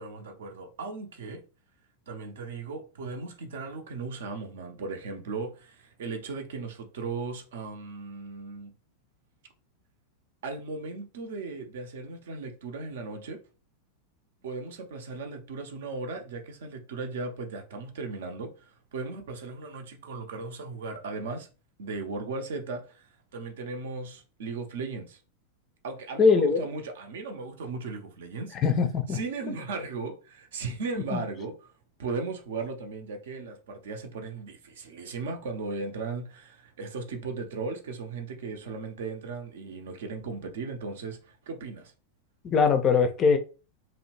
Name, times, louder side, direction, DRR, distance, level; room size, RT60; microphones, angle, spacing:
voice 1, 0.0-1.4 2.1-8.7 10.4-13.4 14.4-21.5 21.8-25.2 25.8-28.6 29.1-31.5 32.0-41.9, right 3 dB, 60° right, 0.5 m, -37 dB
voice 2, 26.2-26.6 28.5-29.2 31.1-31.2 42.4-43.4, left 5 dB, 30° left, 0.4 m, -21 dB
2.7 x 2.0 x 2.9 m
figure-of-eight pair, 90°, 0 cm